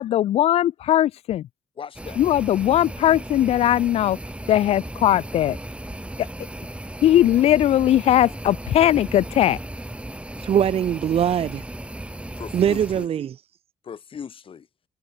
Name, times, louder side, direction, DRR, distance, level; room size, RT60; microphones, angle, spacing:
voice 1, 0.0-1.5 2.2-4.2 4.5-5.6 7.0-9.6, left 12 dB, 75° left, 0.8 m, -19 dB
voice 2, 1.8-2.2 12.4-13.1 13.8-14.7, left 7 dB, 60° left, 2.3 m, -38 dB
sound 1, 2.0-13.1, right 1 dB, 10° right, 7.8 m, -36 dB
voice 3, 10.4-11.7 12.5-13.4, right 9 dB, 70° right, 2.1 m, -22 dB
supercardioid pair, 50°, 10 cm